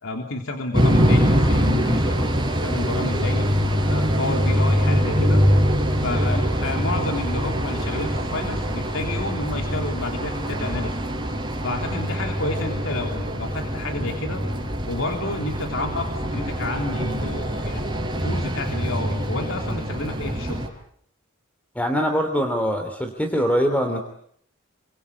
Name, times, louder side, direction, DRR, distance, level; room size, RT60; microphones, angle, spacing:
voice 1, 0.0-2.3 2.6-3.5 3.9-5.4 6.0-11.0 11.6-14.4 14.9-17.8 18.2-20.6, left 2 dB, 70° left, 3 dB, 3.4 m, -30 dB
sound 1, 0.7-20.7, equal, 20° right, 5.3 m, -23 dB
voice 2, 21.7-24.0, equal, 5° left, 5 dB, 3.0 m, -23 dB
29.5 x 24.0 x 8.5 m, 0.70 s
head